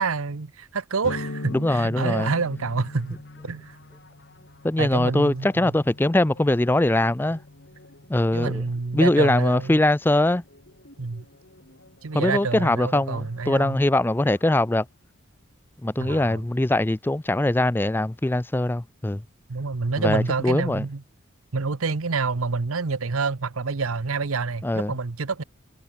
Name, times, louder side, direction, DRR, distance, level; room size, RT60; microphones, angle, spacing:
voice 1, 0.0-3.2 3.4-3.8 4.8-5.7 8.3-9.8 11.0-11.2 12.0-13.8 16.0-16.4 19.5-21.0 21.5-25.4, right 4 dB, 90° right, 0.9 m, -27 dB
sound 1, 1.0-8.6, left 2 dB, 70° left, 1.3 m, -40 dB
voice 2, 1.5-2.3 4.6-7.4 8.1-8.6 8.9-10.4 12.1-14.9 15.8-19.2 20.0-20.9 24.6-24.9, left 1 dB, 10° left, 0.4 m, -22 dB
sound 2, 2.7-15.2, left 2 dB, 55° left, 6.4 m, -55 dB
head